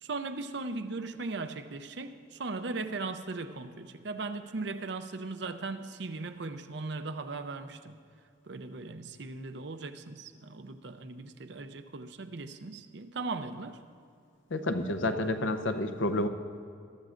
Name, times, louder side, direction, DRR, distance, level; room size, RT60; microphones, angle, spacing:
voice 1, 0.0-8.0 8.4-13.8, right 3 dB, 60° right, 9 dB, 0.6 m, -38 dB
voice 2, 14.5-16.3, left 1 dB, 75° left, 8 dB, 0.8 m, -29 dB
22.0 x 12.5 x 2.5 m, 2.3 s
head